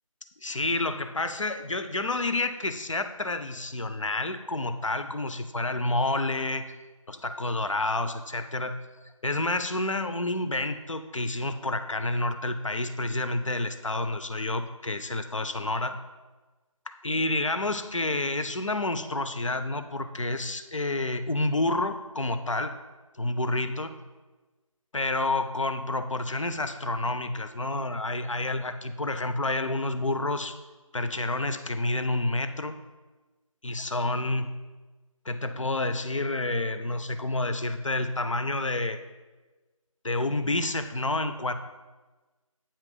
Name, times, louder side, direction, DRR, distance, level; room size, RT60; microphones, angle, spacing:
voice 1, 0.4-6.7 7.1-8.8 9.2-16.0 16.9-22.7 23.2-23.9 24.9-30.6 30.9-32.7 33.6-34.5 35.3-39.0 40.0-41.5, left 2 dB, 60° left, 9 dB, 0.5 m, -29 dB
8.7 x 2.9 x 5.0 m, 1.2 s
figure-of-eight pair, 170°, 18 cm